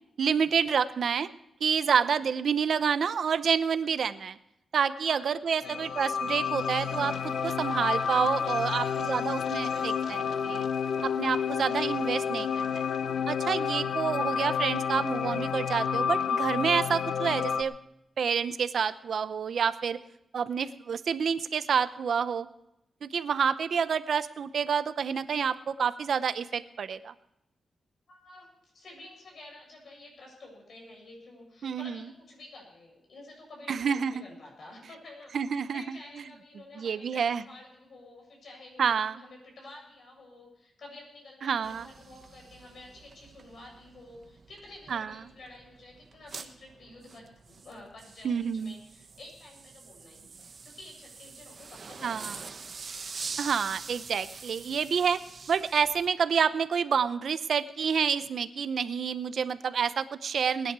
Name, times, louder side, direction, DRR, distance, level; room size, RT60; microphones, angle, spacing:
voice 1, 0.2-1.3 1.6-4.4 4.7-10.2 10.4-10.7 11.0-12.8 13.3-17.7 18.2-20.0 20.3-22.5 23.0-27.1 31.6-32.0 33.7-34.2 35.3-36.0 36.8-37.4 38.8-39.2 41.4-41.9 44.9-45.1 48.2-48.7 52.0-52.3 53.4-55.2 55.5-60.7, right 6 dB, 70° right, 13 dB, 0.7 m, -28 dB
voice 2, 5.0-6.0 8.4-10.0 13.5-13.8 28.1-35.4 35.7-52.7, left 2 dB, 65° left, 0 dB, 7.7 m, -50 dB
sound 1, 5.6-17.6, left 7 dB, 85° left, 0.8 m, -30 dB
sound 2, 41.6-56.1, right 5 dB, 50° right, 1.2 m, -45 dB
20.5 x 10.5 x 4.7 m, 0.84 s
wide cardioid pair, 110°, 0 cm